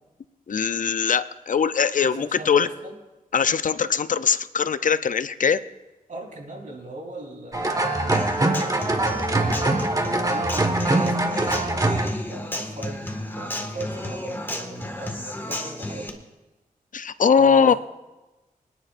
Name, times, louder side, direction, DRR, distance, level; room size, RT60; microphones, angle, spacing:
voice 1, 0.5-2.7 3.3-5.6 16.9-17.7, left 6 dB, 65° left, 13 dB, 0.5 m, -21 dB
voice 2, 2.0-2.9 6.1-16.2 17.4-17.8, right 2 dB, 60° right, -1 dB, 3.7 m, -39 dB
sound 1, 7.5-12.1, right 2 dB, 25° right, 1.5 m, -23 dB
Human voice / Acoustic guitar, 8.1-16.1, left 1 dB, 15° left, 1.8 m, -33 dB
25.5 x 10.0 x 2.6 m, 1.1 s
wide cardioid pair, 70°, 15 cm